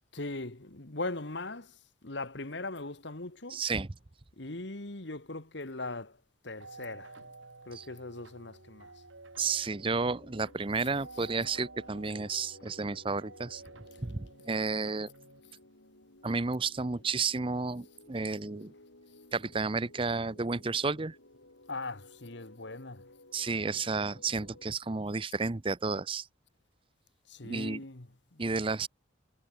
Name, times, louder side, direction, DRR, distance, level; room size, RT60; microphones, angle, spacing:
voice 1, 0.1-3.6 4.4-6.2 6.4-7.3 7.7-9.0 10.8-10.9 11.1-11.3 21.7-23.1 27.3-28.4, left 2 dB, 60° left, 1.8 m, -40 dB
voice 2, 3.5-3.9 7.7-7.8 9.4-13.6 14.0-15.1 16.2-18.7 19.3-21.2 23.3-26.3 27.4-27.8 28.4-28.9, right 4 dB, 25° right, 0.6 m, -32 dB
sound 1, 6.6-15.4, right 3 dB, 75° right, 3.8 m, -52 dB
sound 2, 9.8-24.7, left 2 dB, 80° left, 4.9 m, -57 dB
head